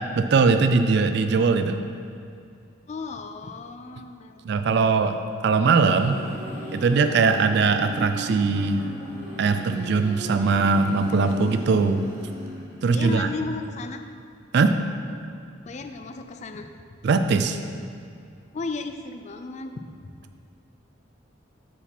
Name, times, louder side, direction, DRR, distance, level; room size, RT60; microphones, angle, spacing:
voice 1, 0.1-1.8 4.4-5.2 5.4-6.2 6.7-8.8 9.4-12.1 12.8-13.3 14.5-14.8 17.0-17.6, right 4 dB, 55° right, 9 dB, 0.3 m, -20 dB
voice 2, 2.9-4.4 12.9-14.0 15.6-16.7 18.5-20.1, left 3 dB, 35° left, 6 dB, 0.4 m, -34 dB
sound 1, 5.3-13.0, equal, 35° right, 1.9 m, -37 dB
6.7 x 4.8 x 5.9 m, 2.4 s
head